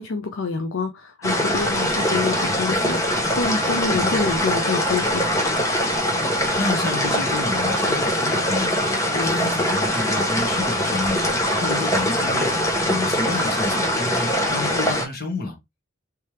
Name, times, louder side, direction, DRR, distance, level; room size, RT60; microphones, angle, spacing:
voice 1, 0.0-5.3, left 4 dB, 60° left, 0.5 m, -27 dB
sound 1, 1.2-15.0, equal, 15° left, 0.7 m, -22 dB
voice 2, 6.5-8.7 9.1-11.4 11.6-15.6, left 3 dB, 45° left, 1.4 m, -29 dB
3.3 x 3.3 x 2.9 m
head